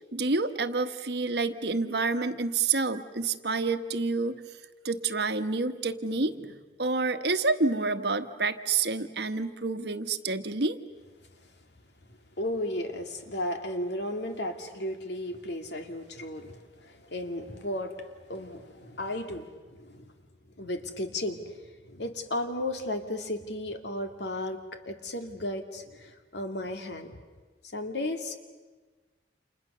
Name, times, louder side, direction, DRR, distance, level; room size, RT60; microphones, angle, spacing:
voice 1, 0.1-4.4 4.8-10.8, right 3 dB, 65° right, 9 dB, 1.2 m, -28 dB
voice 2, 12.1-20.1 20.6-27.2 27.7-28.4, left 1 dB, 70° left, 6 dB, 2.3 m, -35 dB
29.5 x 28.0 x 6.7 m, 1.4 s
head